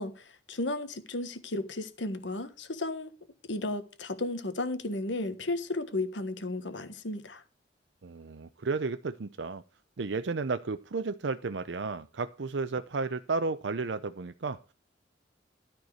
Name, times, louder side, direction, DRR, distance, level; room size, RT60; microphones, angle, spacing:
voice 1, 0.0-3.1 3.5-7.4, left 2 dB, 80° left, 1.4 m, -34 dB
voice 2, 8.0-9.6 10.0-14.7, right 4 dB, 75° right, 0.6 m, -33 dB
13.5 x 4.6 x 7.9 m
head